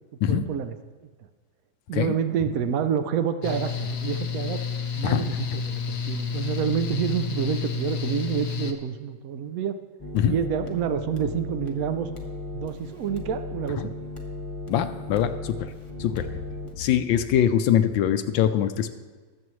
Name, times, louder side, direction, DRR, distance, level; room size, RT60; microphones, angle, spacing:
voice 1, 0.3-0.7 1.9-4.6 5.0-9.8 10.3-12.1 12.5-14.0, right 8 dB, 75° right, 9 dB, 0.8 m, -28 dB
Mechanical fan, 3.4-8.7, left 6 dB, 55° left, 0.7 m, -30 dB
sound 1, 10.0-16.7, left 2 dB, 20° left, 0.9 m, -36 dB
voice 2, 14.7-15.6 16.0-16.3 16.8-18.9, left 10 dB, 80° left, 10 dB, 1.3 m, -23 dB
20.0 x 7.4 x 3.1 m, 1.4 s
omnidirectional pair, 2.1 m